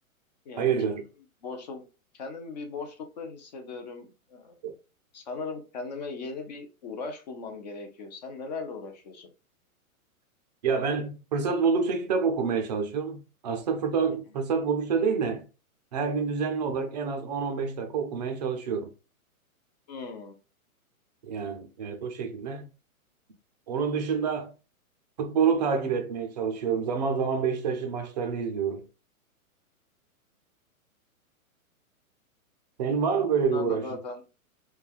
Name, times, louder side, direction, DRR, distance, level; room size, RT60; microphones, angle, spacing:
voice 1, 0.6-1.0 4.6-4.7 10.6-15.5 15.9-18.9 21.2-22.7 23.7-24.5 25.2-28.8 32.8-34.0, right 6 dB, 30° right, 0.4 m, -27 dB
voice 2, 1.4-1.8 2.1-4.5 5.1-9.3 19.9-20.4 33.5-34.2, left 4 dB, 30° left, 0.4 m, -38 dB
3.2 x 2.2 x 2.3 m
hypercardioid pair, 150°, 44 cm